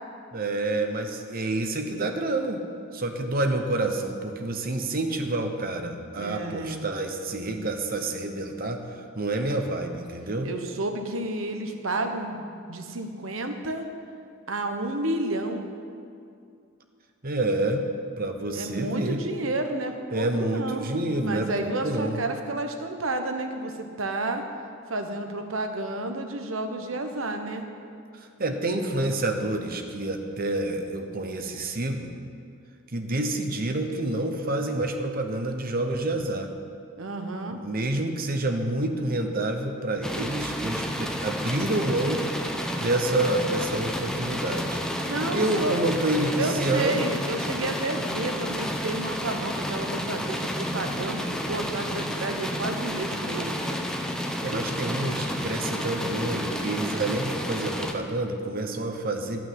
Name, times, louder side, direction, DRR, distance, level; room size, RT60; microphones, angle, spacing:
voice 1, 0.3-2.6 2.9-10.5 17.2-17.9 18.2-19.2 20.1-22.2 28.4-32.1 32.9-36.5 37.5-42.3 42.8-44.8 45.3-47.0 54.4-59.4, right 2 dB, 45° right, 5 dB, 1.0 m, -28 dB
voice 2, 6.1-6.8 10.4-13.9 14.5-15.6 18.5-20.8 21.2-24.4 24.9-27.7 37.0-37.6 45.0-45.8 46.4-53.6, right 2 dB, 75° right, 5 dB, 1.2 m, -31 dB
sound 1, 40.0-57.9, equal, 5° left, 0.8 m, -31 dB
13.5 x 6.1 x 9.4 m, 2.4 s
head